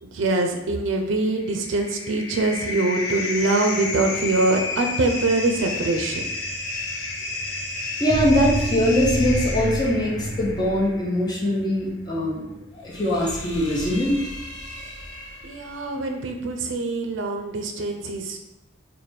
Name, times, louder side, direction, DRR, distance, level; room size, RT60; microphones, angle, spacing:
voice 1, 0.0-6.3 15.4-18.4, right 2 dB, 75° right, 4 dB, 0.4 m, -24 dB
sound 1, 1.3-15.8, left 2 dB, 70° left, 0.6 m, -33 dB
voice 2, 8.0-12.4 12.7-14.2, left 1 dB, 20° left, -5 dB, 0.8 m, -22 dB
sound 2, 8.1-10.9, right 1 dB, 25° right, 0.5 m, -28 dB
3.3 x 2.1 x 4.3 m, 0.95 s
head